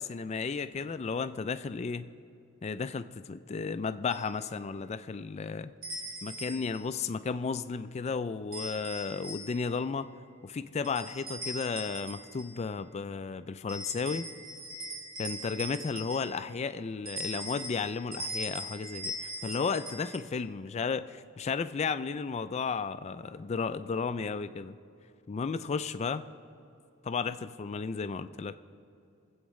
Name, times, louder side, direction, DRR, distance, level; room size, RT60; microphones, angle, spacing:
voice 1, 0.0-2.1 2.6-5.7 6.2-10.1 10.4-14.2 15.2-24.8 25.3-26.3 27.0-28.5, left 5 dB, 30° left, 12 dB, 0.3 m, -33 dB
sound 1, 4.1-4.3 5.8-6.9 8.5-9.8 10.8-12.6 13.7-16.6 17.1-20.2, right 1 dB, 65° right, 1.7 m, -41 dB
22.0 x 8.1 x 3.2 m, 2.6 s
head